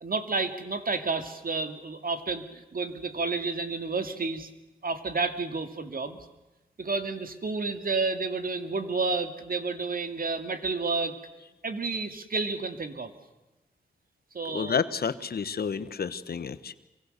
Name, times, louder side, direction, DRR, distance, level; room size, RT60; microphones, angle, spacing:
voice 1, 0.0-4.5 4.8-6.2 6.8-11.2 11.6-13.1 14.3-14.8, right 4 dB, 60° right, 8 dB, 2.4 m, -30 dB
voice 2, 14.5-16.7, left 6 dB, 75° left, 13 dB, 1.2 m, -30 dB
27.0 x 24.0 x 6.7 m, 1.0 s
cardioid pair, 45°, 16 cm